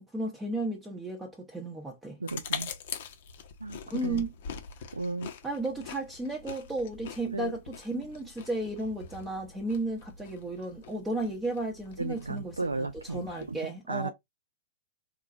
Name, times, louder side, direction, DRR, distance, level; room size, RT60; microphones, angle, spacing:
voice 1, 0.0-2.2 3.9-4.3 5.4-14.1, right 2 dB, 10° right, 0.7 m, -34 dB
voice 2, 2.2-2.7 3.6-4.3 4.9-5.3 7.3-7.6 12.0-14.1, right 3 dB, 90° right, 0.3 m, -35 dB
sound 1, 2.3-13.6, left 7 dB, 60° left, 0.7 m, -44 dB
3.7 x 2.4 x 2.5 m
figure-of-eight pair, 105°, 0 cm